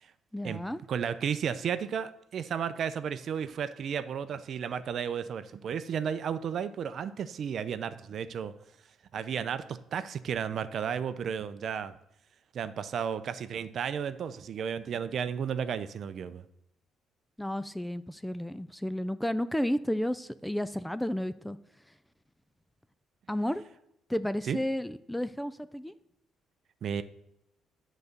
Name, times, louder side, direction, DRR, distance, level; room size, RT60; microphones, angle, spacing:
voice 1, 0.3-0.8 17.4-21.6 23.3-23.6 24.1-25.9, left 1 dB, 5° left, 14 dB, 0.3 m, -32 dB
voice 2, 0.9-8.5 9.1-11.9 12.5-16.4 24.5-24.6 26.8-27.0, right 7 dB, 55° right, 13 dB, 0.5 m, -33 dB
10.0 x 4.1 x 6.6 m, 0.81 s
cardioid pair, 110°, 0 cm